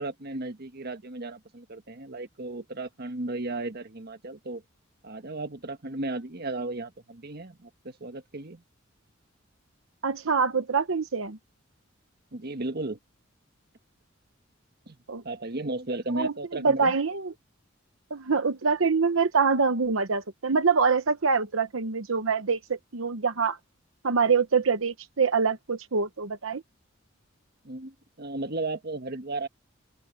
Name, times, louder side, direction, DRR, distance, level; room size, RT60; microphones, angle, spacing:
voice 1, 0.0-4.6 5.0-8.6 12.3-13.0 14.9-15.0 15.2-16.9 27.6-29.5, right 2 dB, 50° right, 1.4 m, -35 dB
voice 2, 10.0-11.4 15.1-15.2 16.1-17.3 18.1-23.6 24.0-26.6, right 5 dB, 80° right, 0.9 m, -25 dB
open air
head